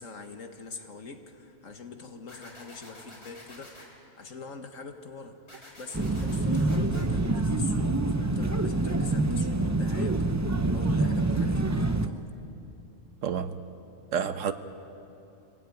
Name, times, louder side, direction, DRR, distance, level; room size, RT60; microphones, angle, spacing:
voice 1, 0.0-3.9 4.2-5.4 5.8-12.3, left 4 dB, 80° left, 1.9 m, -43 dB
sound 1, 2.3-3.9 5.5-7.1, left 1 dB, 55° left, 4.1 m, -49 dB
sound 2, 5.9-12.1, right 2 dB, 15° right, 0.6 m, -26 dB
voice 2, 13.2-13.6 14.1-14.5, right 7 dB, 75° right, 1.3 m, -29 dB
25.5 x 17.5 x 9.3 m
omnidirectional pair, 1.3 m